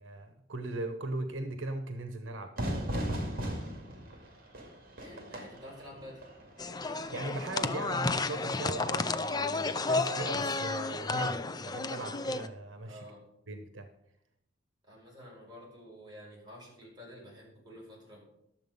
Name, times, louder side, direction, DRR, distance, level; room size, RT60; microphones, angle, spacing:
voice 1, 0.0-3.1 7.1-13.1 13.5-13.9, right 2 dB, 85° right, 8 dB, 1.0 m, -39 dB
Fire / Fireworks, 2.6-8.1, equal, 50° right, 2.2 m, -38 dB
voice 2, 5.0-6.2 12.8-13.2 14.8-18.2, equal, 25° right, -4 dB, 5.1 m, -49 dB
sound 1, 6.6-12.5, left 3 dB, 20° left, 0.5 m, -32 dB
11.5 x 7.4 x 5.3 m, 0.77 s
head